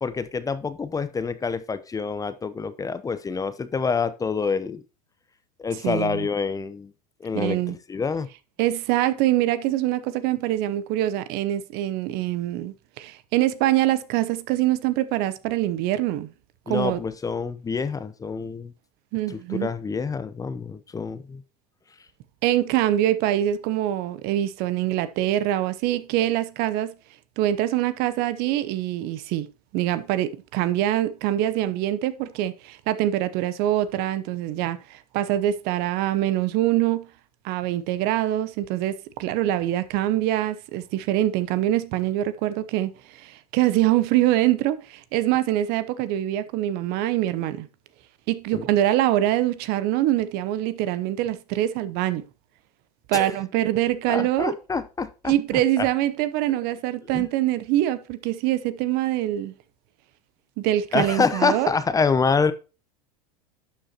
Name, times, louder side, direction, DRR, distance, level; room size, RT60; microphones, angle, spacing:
voice 1, 0.0-4.8 5.6-6.9 7.2-8.3 16.7-18.7 19.3-21.4 48.5-48.6 53.1-53.3 54.1-55.3 55.8-55.9 57.1-57.3 60.9-62.5, left 5 dB, 15° left, 0.8 m, -26 dB
voice 2, 5.8-6.3 7.3-7.8 8.6-16.3 16.7-17.0 19.1-19.7 22.4-26.9 27.4-29.5 29.7-37.1 37.4-47.7 48.3-52.2 53.1-54.5 55.3-59.5 60.6-61.7, right 13 dB, 55° right, 0.8 m, -24 dB
11.5 x 6.3 x 2.9 m
hypercardioid pair, 95°, 20 cm